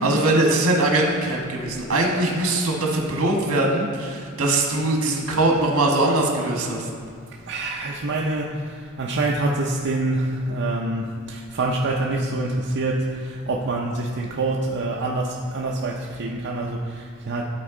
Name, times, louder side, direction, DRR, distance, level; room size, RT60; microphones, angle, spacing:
voice 1, 0.0-6.9, right 2 dB, 75° right, 0 dB, 1.4 m, -21 dB
voice 2, 7.5-17.4, right 2 dB, 55° right, -2 dB, 0.6 m, -26 dB
13.0 x 4.4 x 3.8 m, 2.3 s
head